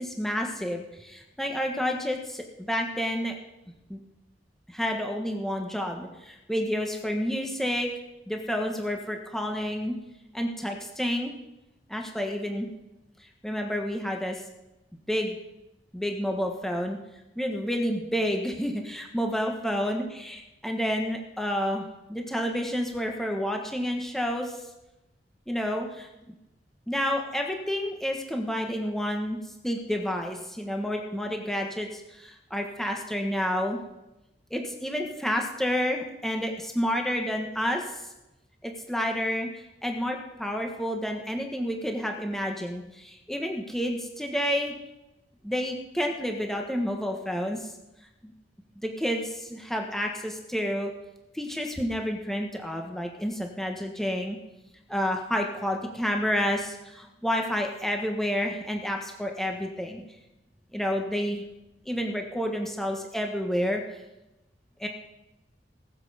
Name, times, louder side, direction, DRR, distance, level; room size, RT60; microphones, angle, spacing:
voice 1, 0.0-3.3 3.9-4.0 4.7-7.9 8.3-9.9 10.3-11.3 11.9-12.7 13.4-14.4 15.1-15.4 15.9-17.0 17.4-24.6 25.5-26.1 26.9-29.4 29.6-33.8 34.5-37.8 38.6-44.7 45.4-47.7 48.2-48.3 48.8-50.9 51.3-54.4 54.9-60.0 60.7-61.4 61.8-63.8 64.8-64.9, equal, ahead, 2 dB, 1.3 m, -29 dB
19.5 x 7.6 x 5.0 m, 0.96 s
head